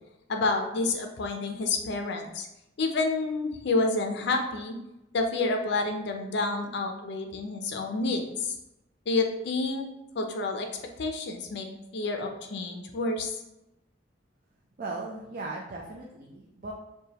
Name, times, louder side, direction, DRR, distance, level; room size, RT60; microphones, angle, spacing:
voice 1, 0.3-2.5 2.8-4.7 5.1-8.5 9.1-9.9 10.1-10.7 11.0-11.7 11.9-13.3, left 3 dB, 65° left, 4 dB, 0.5 m, -29 dB
voice 2, 14.8-16.7, right 3 dB, 45° right, -2 dB, 0.4 m, -37 dB
4.8 x 2.2 x 2.8 m, 0.89 s
head